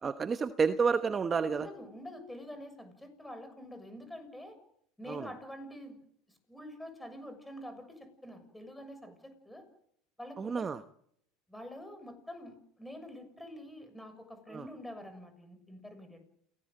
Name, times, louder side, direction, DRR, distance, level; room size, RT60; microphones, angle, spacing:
voice 1, 0.0-1.7 5.1-5.3 10.4-10.8 14.5-14.7, right 5 dB, 25° right, 10 dB, 1.0 m, -30 dB
voice 2, 1.5-4.5 5.0-6.0 6.3-9.6 10.2-10.7 11.5-16.3, equal, 5° left, 8 dB, 6.7 m, -46 dB
28.5 x 18.0 x 7.8 m, 0.71 s
supercardioid pair, 115°, 0 cm